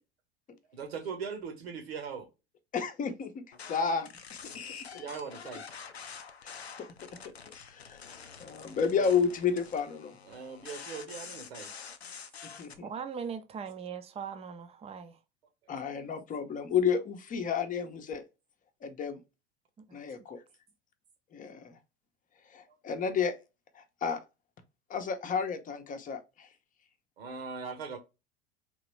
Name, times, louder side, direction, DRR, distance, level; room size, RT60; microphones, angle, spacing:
voice 1, 0.7-2.3 4.5-5.8 8.9-9.2 10.2-11.7 27.2-28.0, right 5 dB, 75° right, 1.3 m, -40 dB
voice 2, 2.7-3.3 3.7-4.1 6.4-6.6 7.7-8.1 8.4-10.1 12.4-12.9 15.7-18.2 18.8-19.2 19.9-20.4 21.3-21.8 22.5-23.3 23.7-24.2 24.9-26.5, left 6 dB, 25° left, 0.8 m, -31 dB
sound 1, 3.5-12.8, left 6 dB, 90° left, 0.5 m, -47 dB
voice 3, 12.8-15.2 19.8-20.0, right 7 dB, 20° right, 0.6 m, -40 dB
3.7 x 2.9 x 3.1 m
figure-of-eight pair, 80°, 31 cm